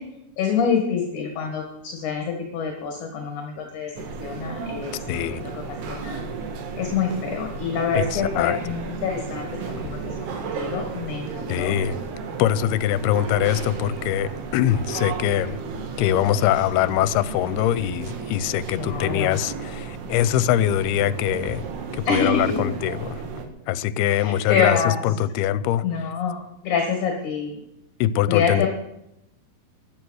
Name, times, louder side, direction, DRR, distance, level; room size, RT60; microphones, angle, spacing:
voice 1, 0.4-1.6 2.0-3.9 4.2-5.0 5.3-6.2 6.8-11.8 18.7-19.3 22.0-22.6 24.1-25.0 25.8-27.6 28.3-28.7, left 5 dB, 55° left, 3 dB, 2.9 m, -26 dB
sound 1, 4.0-23.5, right 5 dB, 90° right, 3.8 m, -33 dB
voice 2, 5.1-5.5 7.9-8.6 11.5-12.0 12.4-15.6 16.0-21.6 21.9-23.2 23.7-26.1 28.0-28.7, left 12 dB, 85° left, 16 dB, 2.6 m, -23 dB
16.0 x 10.5 x 6.4 m, 0.83 s
omnidirectional pair, 4.5 m